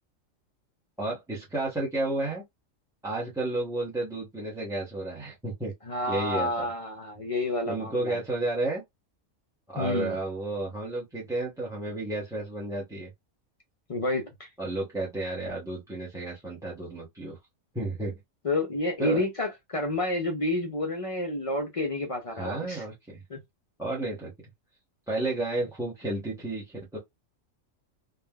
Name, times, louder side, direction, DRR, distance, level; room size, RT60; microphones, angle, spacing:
voice 1, 1.0-2.4 3.0-5.7 6.1-6.7 7.7-8.8 9.7-13.1 14.6-17.4 17.7-18.2 19.0-19.2 22.3-23.2 23.8-24.3 25.1-27.0, right 2 dB, 5° right, 0.7 m, -32 dB
voice 2, 5.8-8.2 9.8-10.2 13.9-14.5 18.4-22.8 23.3-23.4, left 2 dB, 50° left, 0.4 m, -29 dB
3.5 x 2.2 x 2.2 m
omnidirectional pair, 1.3 m